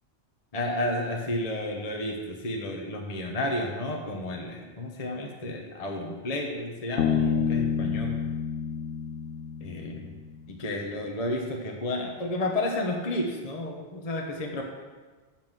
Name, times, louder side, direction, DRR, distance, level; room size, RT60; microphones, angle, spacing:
voice 1, 0.5-8.1 9.6-10.1 10.5-14.6, left 1 dB, 35° left, 1 dB, 1.0 m, -31 dB
Bass guitar, 7.0-10.5, left 7 dB, 80° left, 1.0 m, -29 dB
7.3 x 5.9 x 7.5 m, 1.3 s
omnidirectional pair, 1.2 m